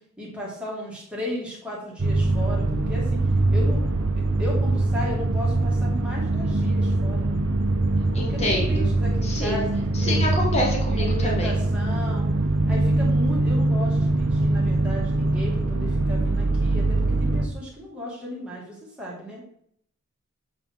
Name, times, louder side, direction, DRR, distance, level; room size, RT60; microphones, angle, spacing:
voice 1, 0.2-3.2 3.5-3.8 4.4-7.3 8.2-10.2 10.9-12.3 12.7-19.4, left 1 dB, 5° right, -5 dB, 2.5 m, -35 dB
sound 1, 2.0-17.5, right 2 dB, 80° right, 0.9 m, -23 dB
voice 2, 8.1-8.9 9.2-9.6 10.0-11.5, left 1 dB, 30° left, -2 dB, 1.6 m, -27 dB
8.1 x 4.3 x 4.8 m, 0.67 s
head